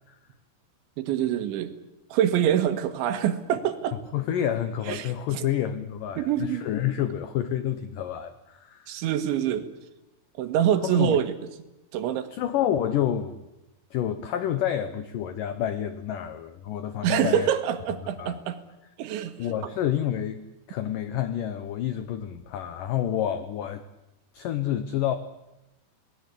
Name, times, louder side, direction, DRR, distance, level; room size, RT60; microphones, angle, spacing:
voice 1, 1.0-1.8 2.1-4.0 4.9-5.5 6.2-6.6 8.9-9.7 10.4-11.3 11.9-12.3 17.0-18.6 19.0-19.5, right 10 dB, 85° right, 9 dB, 3.8 m, -25 dB
voice 2, 4.1-9.0 10.8-11.2 12.3-13.4 13.9-17.5 18.2-18.4 19.4-20.4 20.7-23.8 24.3-25.2, left 10 dB, 85° left, 11 dB, 1.9 m, -29 dB
27.0 x 19.5 x 8.4 m, 0.95 s
omnidirectional pair, 5.2 m